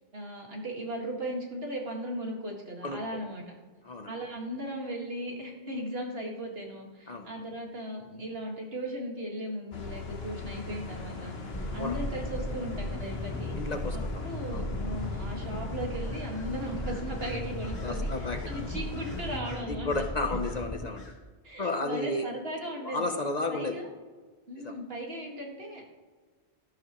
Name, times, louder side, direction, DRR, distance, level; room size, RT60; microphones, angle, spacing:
voice 1, 0.1-3.4 4.1-13.5 13.9-19.9 21.4-23.1 23.5-23.9 24.5-25.9, right 1 dB, 65° right, 0 dB, 2.2 m, -37 dB
voice 2, 2.8-3.2 3.8-4.1 7.1-7.3 11.8-12.0 13.6-14.2 14.5-14.7 17.8-18.5 19.7-21.1 21.6-22.3 22.8-23.8 24.6-24.8, left 2 dB, 40° left, 5 dB, 0.8 m, -33 dB
sound 1, 9.7-19.4, left 4 dB, 65° left, 1.4 m, -40 dB
sound 2, 11.5-20.9, equal, 15° left, 0.9 m, -37 dB
Bird vocalization bird call bird song, 16.1-16.5 16.8-20.6 20.9-21.2, left 3 dB, 85° left, 2.7 m, -53 dB
13.0 x 11.5 x 3.1 m, 1.4 s
omnidirectional pair, 1.1 m